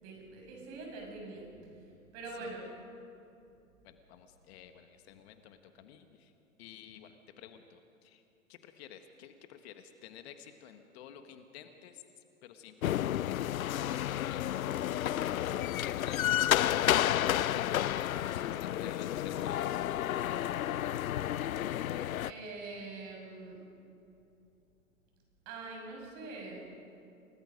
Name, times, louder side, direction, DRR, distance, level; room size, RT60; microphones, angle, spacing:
voice 1, 0.0-1.5 2.1-2.7 22.3-23.6 25.4-26.7, right 3 dB, 40° right, 1 dB, 6.8 m, -44 dB
voice 2, 2.3-2.7 3.8-6.3 6.6-8.2 8.5-12.0 12.4-19.8, left 9 dB, 50° left, 7 dB, 1.6 m, -52 dB
sound 1, 12.8-22.3, left 12 dB, 75° left, 0.6 m, -31 dB
29.0 x 19.0 x 5.2 m, 2.7 s
hypercardioid pair, 115°, 41 cm